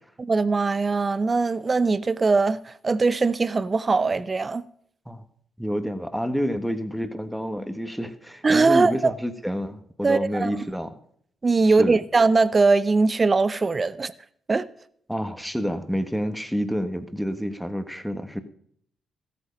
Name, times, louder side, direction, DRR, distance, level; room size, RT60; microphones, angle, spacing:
voice 1, 0.3-4.6 8.4-9.1 10.0-10.6 11.4-14.1 14.5-14.7, right 3 dB, 35° right, 0.6 m, -21 dB
voice 2, 5.6-11.0 11.6-12.0 15.1-18.4, equal, ahead, 1.4 m, -28 dB
14.0 x 8.6 x 5.3 m
supercardioid pair, 65°, 0 cm